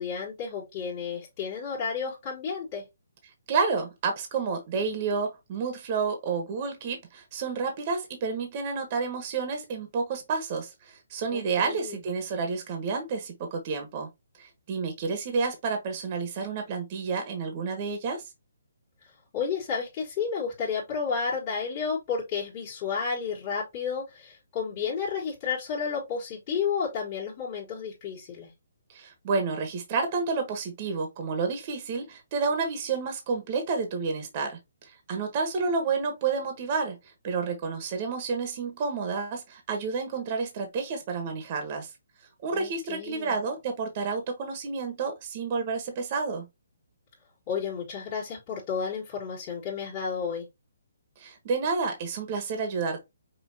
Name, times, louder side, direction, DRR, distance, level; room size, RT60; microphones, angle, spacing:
voice 1, 0.0-2.8 11.3-12.0 19.3-28.5 42.5-43.4 47.5-50.5, left 6 dB, 30° left, 1.7 m, -32 dB
voice 2, 3.5-14.1 14.4-18.3 28.9-41.9 42.4-46.4 51.2-53.1, right 4 dB, 35° right, 1.2 m, -30 dB
5.4 x 2.7 x 2.8 m
hypercardioid pair, 160°, 0 cm